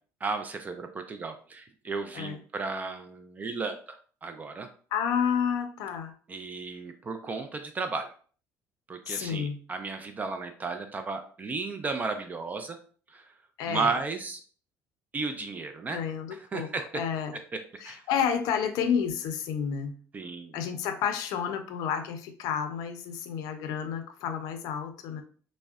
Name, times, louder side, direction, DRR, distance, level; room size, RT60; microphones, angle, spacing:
voice 1, 0.2-3.8 4.2-4.7 6.3-8.1 8.9-12.8 13.1-13.3 13.7-14.4 15.1-16.0 16.4-16.8 17.8-18.0 20.1-20.6, right 4 dB, 25° right, 7 dB, 0.3 m, -34 dB
voice 2, 4.9-6.1 9.1-9.6 13.6-13.9 15.9-16.7 16.9-17.3 17.8-19.9 20.5-25.2, left 7 dB, 80° left, 7 dB, 0.5 m, -30 dB
3.6 x 2.1 x 2.3 m, 0.42 s
cardioid pair, 115°, 6 cm